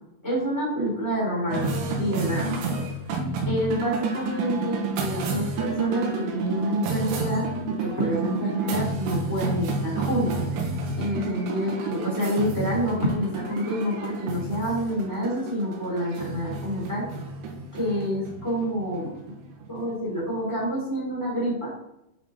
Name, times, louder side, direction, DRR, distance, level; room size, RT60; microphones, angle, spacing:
voice 1, 0.2-1.7 2.0-2.6 3.4-10.4 11.0-17.1 17.7-19.1 19.7-21.7, equal, 5° right, -5 dB, 1.5 m, -28 dB
sound 1, 1.5-20.1, right 3 dB, 80° right, 3.8 m, -30 dB
10.5 x 4.5 x 3.9 m, 0.84 s
omnidirectional pair, 5.6 m